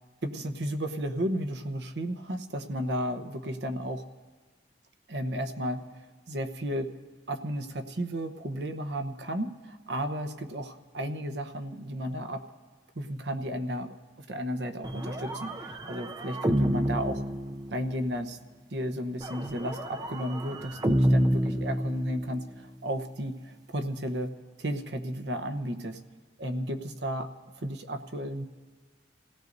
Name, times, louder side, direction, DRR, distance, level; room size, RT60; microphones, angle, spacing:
voice 1, 0.2-4.0 5.1-5.8 6.3-6.9 7.3-12.4 13.0-17.2 17.7-18.4 18.7-24.3 24.6-26.0 26.4-27.3 27.6-28.5, equal, 65° right, 8 dB, 0.9 m, -33 dB
sound 1, 14.8-18.1 19.2-22.5, equal, 20° right, 0.5 m, -28 dB
28.0 x 17.0 x 2.7 m, 1.4 s
head